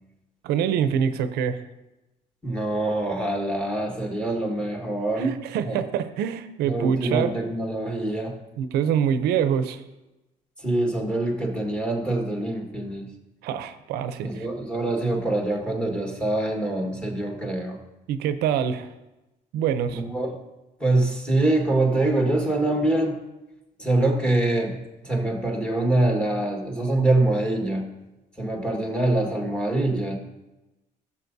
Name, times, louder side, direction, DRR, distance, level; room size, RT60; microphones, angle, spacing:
voice 1, 0.4-1.6 5.2-7.3 8.6-9.8 13.4-14.5 18.1-18.9 19.5-20.0, right 8 dB, 90° right, 11 dB, 0.6 m, -25 dB
voice 2, 2.4-5.3 5.6-5.8 6.6-8.4 10.6-13.1 14.2-17.8 19.9-20.3 20.8-23.2 23.8-27.9 28.4-30.2, right 2 dB, 5° left, 1 dB, 1.6 m, -24 dB
15.5 x 7.3 x 2.7 m, 1.0 s
cardioid pair, 140°, 16 cm